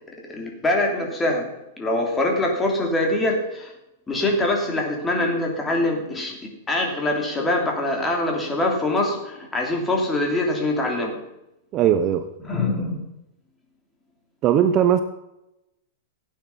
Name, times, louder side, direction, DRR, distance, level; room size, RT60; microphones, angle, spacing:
voice 1, 0.3-1.5 1.8-3.7 4.1-11.2 12.4-13.0, left 2 dB, 10° left, 1 dB, 3.1 m, -24 dB
voice 2, 11.7-12.3 14.4-15.0, right 9 dB, 30° right, 10 dB, 0.8 m, -18 dB
16.5 x 9.3 x 5.7 m, 0.89 s
supercardioid pair, 150°, 0 cm